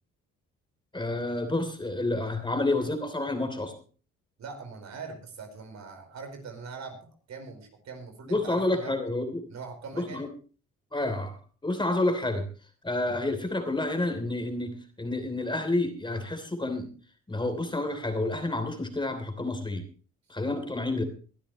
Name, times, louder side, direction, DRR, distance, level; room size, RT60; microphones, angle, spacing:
voice 1, 0.9-3.7 8.3-9.5 9.9-10.3 10.9-12.4 12.8-16.9 17.3-19.8 20.3-21.0, left 2 dB, 15° left, 7 dB, 3.1 m, -29 dB
voice 2, 4.4-9.1 9.5-10.3, right 4 dB, 65° right, 6 dB, 4.6 m, -42 dB
21.5 x 12.0 x 3.1 m, 0.37 s
cardioid pair, 90°, 30 cm